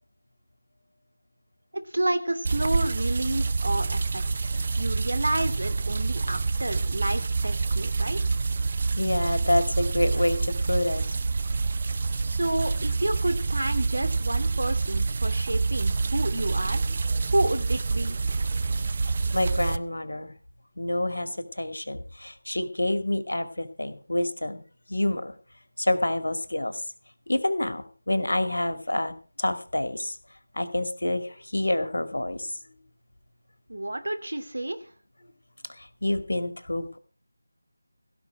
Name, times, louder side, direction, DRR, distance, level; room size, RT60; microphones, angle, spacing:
voice 1, 1.7-8.2 12.2-16.8 17.3-18.2 33.7-34.8, right 1 dB, 70° right, 9 dB, 2.7 m, -30 dB
sound 1, 2.4-19.8, right 4 dB, 35° right, 0.6 m, -27 dB
voice 2, 8.9-11.2 19.3-20.3 20.8-24.6 24.9-25.3 25.8-26.8 27.3-30.2 30.5-32.6 35.7-37.0, left 1 dB, 75° left, 10 dB, 2.2 m, -28 dB
16.5 x 5.7 x 8.6 m, 0.39 s
figure-of-eight pair, 165°, 0 cm